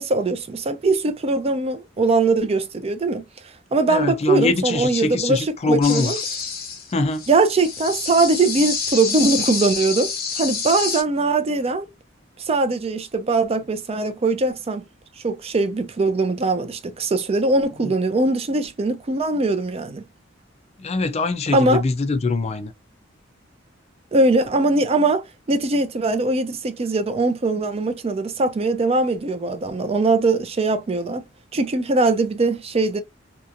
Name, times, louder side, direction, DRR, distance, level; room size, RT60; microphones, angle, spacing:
voice 1, 0.0-3.2 3.7-6.2 7.3-11.9 12.5-14.8 15.2-20.0 21.5-21.8 24.1-31.2 31.5-33.0, right 3 dB, 30° right, 0.4 m, -21 dB
voice 2, 3.9-6.1 6.9-7.3 17.8-17.9 20.8-22.7, left 3 dB, 35° left, 0.4 m, -23 dB
sound 1, 5.8-11.0, left 5 dB, 50° left, 0.9 m, -28 dB
2.8 x 2.3 x 2.4 m
head